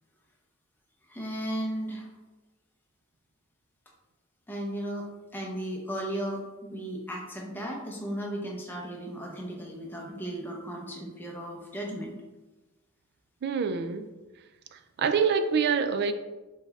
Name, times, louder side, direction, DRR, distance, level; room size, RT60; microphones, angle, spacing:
voice 1, 1.1-2.1 4.5-5.1 5.3-12.1, right 1 dB, 10° left, -1 dB, 0.7 m, -35 dB
voice 2, 13.4-14.1 14.7-16.1, right 6 dB, 50° right, 10 dB, 0.3 m, -26 dB
5.2 x 4.1 x 2.3 m, 1.1 s
head